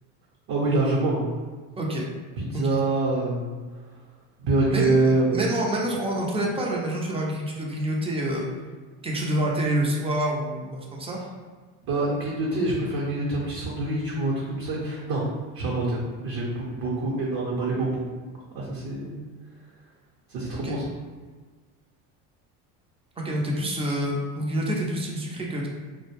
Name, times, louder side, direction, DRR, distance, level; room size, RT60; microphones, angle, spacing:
voice 1, 0.5-1.5 2.4-3.6 4.4-5.4 11.9-15.2 15.5-18.1 18.5-19.2 20.3-20.9, right 2 dB, 60° right, -5 dB, 0.8 m, -25 dB
voice 2, 4.7-8.5 9.0-11.2 20.6-20.8 23.2-25.7, right 1 dB, 15° right, -2 dB, 0.4 m, -27 dB
2.3 x 2.1 x 3.1 m, 1.4 s
supercardioid pair, 95°, 46 cm